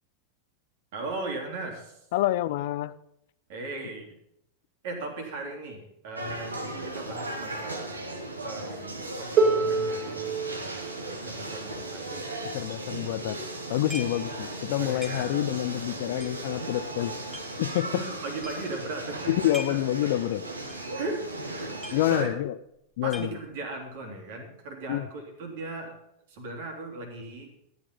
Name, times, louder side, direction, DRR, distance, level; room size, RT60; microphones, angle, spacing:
voice 1, 0.9-1.9 3.5-4.1 4.8-7.9 8.4-12.5 14.8-15.3 17.8-19.8 20.9-22.3 23.0-25.9 26.3-27.5, right 2 dB, 55° right, 3 dB, 3.1 m, -38 dB
voice 2, 2.1-2.9 12.5-13.4 13.7-17.1 17.6-18.0 19.3-20.4 21.9-22.5 23.0-23.3 24.9-25.1, left 14 dB, 50° left, 16 dB, 0.5 m, -27 dB
sound 1, 6.2-22.2, right 2 dB, 80° right, 1.8 m, -37 dB
Harp, 9.4-15.2 16.2-16.3, right 4 dB, 35° right, 3.2 m, -30 dB
sound 2, 13.9-14.3 14.6-14.7 15.0-15.6 16.2-17.5 18.0-18.1 18.4-18.8 19.3-19.9 20.2-20.3 20.7-20.9 21.2-21.3 21.5-22.4 22.7-23.7, left 1 dB, 5° right, 1.8 m, -42 dB
13.0 x 8.9 x 5.3 m, 0.78 s
figure-of-eight pair, 90°, 0 cm